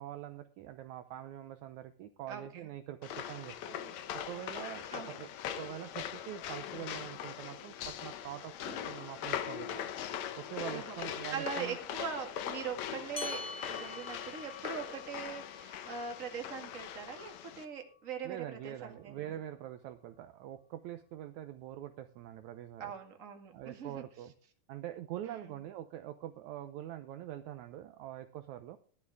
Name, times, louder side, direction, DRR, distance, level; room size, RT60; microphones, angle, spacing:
voice 1, 0.0-5.3 5.5-9.8 10.4-11.8 18.2-22.9 23.5-24.3 24.7-28.8, right 12 dB, 80° right, 9 dB, 1.7 m, -44 dB
voice 2, 2.3-2.7 4.9-5.2 10.7-18.4 18.6-19.4 22.8-24.0 25.2-25.6, right 6 dB, 30° right, 4 dB, 1.8 m, -42 dB
sound 1, 3.0-17.6, left 9 dB, 70° left, 1.7 m, -41 dB
sound 2, 13.2-18.0, left 2 dB, 35° left, 0.7 m, -47 dB
15.5 x 12.0 x 3.5 m, 0.41 s
omnidirectional pair, 4.2 m